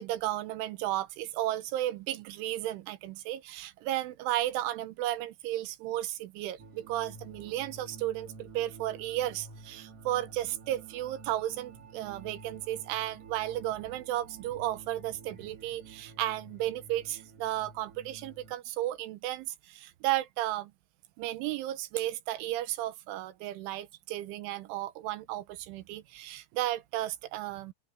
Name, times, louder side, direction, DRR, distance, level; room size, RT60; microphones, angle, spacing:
voice 1, 0.0-20.7 21.2-27.7, right 14 dB, 80° right, 3.3 m, -34 dB
sound 1, 6.6-18.6, right 4 dB, 35° right, 2.9 m, -50 dB
omnidirectional pair, 5.7 m